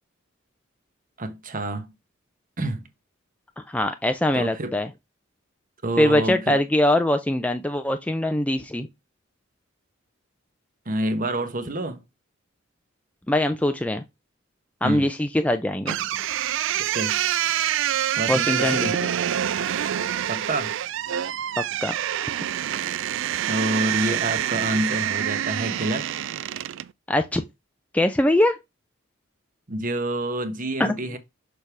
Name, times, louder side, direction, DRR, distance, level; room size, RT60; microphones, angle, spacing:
voice 1, 1.2-1.9 2.6-2.8 4.3-4.8 5.8-6.6 10.9-12.0 14.8-15.1 16.8-17.2 18.2-19.0 20.3-20.8 23.5-26.1 29.7-31.2, right 1 dB, 40° right, 1.1 m, -28 dB
voice 2, 3.7-4.9 6.0-8.9 13.3-14.0 14.8-15.9 18.3-19.1 21.8-21.9 27.1-27.4 27.9-28.6 30.8-30.9, left 1 dB, 5° left, 0.4 m, -22 dB
sound 1, 15.9-26.9, right 11 dB, 65° right, 0.4 m, -26 dB
6.5 x 3.4 x 5.9 m
head